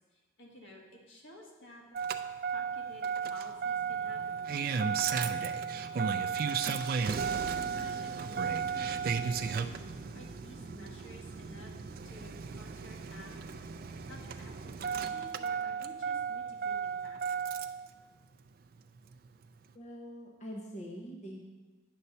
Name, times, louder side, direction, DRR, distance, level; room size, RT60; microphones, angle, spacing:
voice 1, 0.1-2.0 2.5-7.4 7.7-9.5 10.1-11.7 12.0-13.4 14.0-17.6, left 1 dB, 80° left, -1 dB, 1.7 m, -53 dB
Engine starting, 1.9-17.9 19.1-19.2, right 6 dB, 50° right, 0.3 m, -34 dB
voice 2, 19.7-21.4, equal, 35° left, -1 dB, 0.9 m, -44 dB
9.4 x 4.2 x 6.7 m, 1.3 s
head